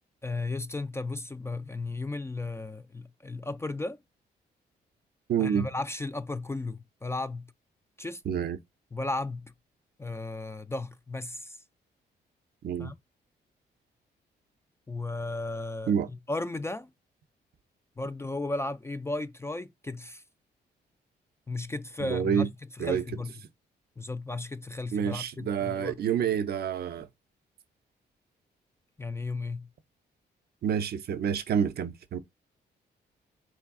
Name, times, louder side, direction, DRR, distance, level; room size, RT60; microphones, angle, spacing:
voice 1, 0.2-4.0 5.4-7.5 8.0-8.2 8.9-9.5 10.0-11.6 12.8-13.0 14.9-16.9 18.0-20.2 21.5-22.5 22.8-23.3 24.0-26.0 29.0-29.7, left 2 dB, 15° left, 0.3 m, -35 dB
voice 2, 5.3-5.7 8.3-8.6 12.6-12.9 15.9-16.1 22.0-22.5 22.8-23.0 24.9-27.1 30.6-32.2, right 8 dB, 60° right, 0.6 m, -28 dB
3.9 x 3.2 x 3.6 m
cardioid pair, 90°, 18 cm